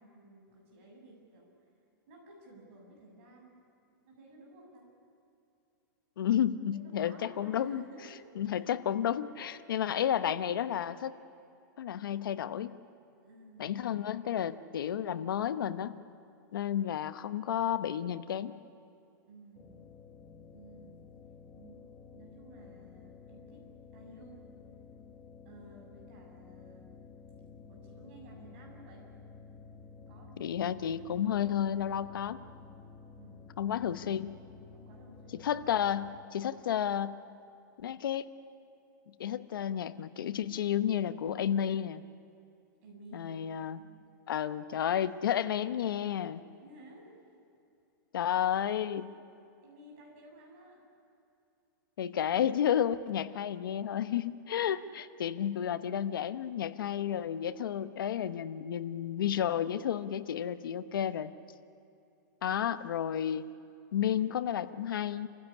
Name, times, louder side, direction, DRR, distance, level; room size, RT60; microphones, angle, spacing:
voice 1, 0.0-1.7 2.1-3.6 4.0-4.9 6.7-8.3 8.6-8.7 9.1-9.2 9.5-10.0 13.2-13.7 19.3-19.8 20.5-21.0 21.5-23.6 23.9-24.4 25.4-26.9 27.7-29.1 30.1-30.5 33.2-33.4 34.7-35.5 42.8-43.4 43.8-43.9 46.6-47.2 49.6-50.8 54.6-54.9 62.4-62.7, right 2 dB, 40° right, -1 dB, 7.3 m, -55 dB
voice 2, 6.2-7.8 8.4-11.1 11.8-12.7 13.6-16.0 16.5-18.6 30.4-32.4 33.6-34.4 35.4-37.2 37.8-38.3 39.1-42.0 43.1-43.8 44.3-46.4 48.1-49.2 52.0-61.3 62.4-63.5 63.9-65.3, left 9 dB, 85° left, 12 dB, 1.0 m, -31 dB
sound 1, 19.5-36.2, left 5 dB, 15° left, 1.2 m, -52 dB
29.0 x 15.5 x 9.9 m, 2.7 s
supercardioid pair, 175°, 11 cm